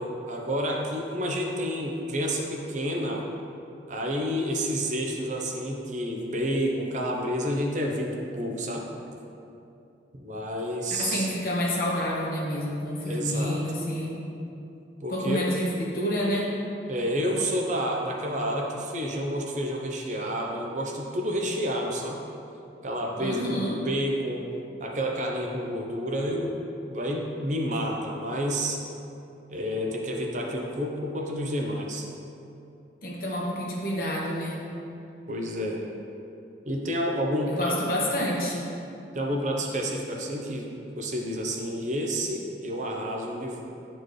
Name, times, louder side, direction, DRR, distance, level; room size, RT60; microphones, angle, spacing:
voice 1, 0.0-3.2 3.9-8.9 10.1-11.3 13.0-13.6 15.0-15.5 16.9-22.2 22.8-24.5 24.8-26.6 26.9-28.8 29.5-32.1 35.3-35.9 36.7-37.9 39.1-40.7 41.0-43.6, equal, 45° right, 0 dB, 0.7 m, -29 dB
voice 2, 10.9-14.2 15.1-16.5 23.2-23.8 33.0-34.7 37.5-38.6, equal, 55° left, -4 dB, 1.3 m, -28 dB
10.0 x 4.4 x 3.2 m, 2.7 s
head